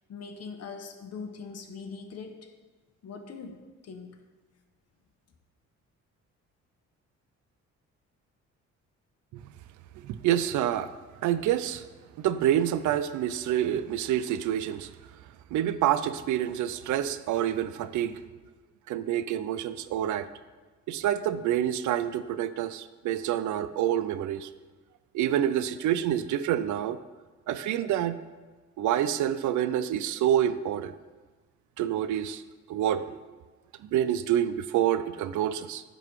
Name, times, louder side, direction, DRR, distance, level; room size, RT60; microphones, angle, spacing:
voice 1, 0.1-2.6 3.0-4.2, left 5 dB, 55° left, 6 dB, 1.0 m, -42 dB
voice 2, 10.0-10.9 11.2-11.8 12.2-14.9 15.5-18.2 18.9-20.3 20.9-24.5 25.1-27.0 27.5-28.2 28.8-31.0 31.8-32.4 32.7-33.2 33.8-35.8, right 11 dB, 75° right, 13 dB, 0.5 m, -27 dB
10.5 x 3.9 x 4.7 m, 1.3 s
cardioid pair, 90°, 30 cm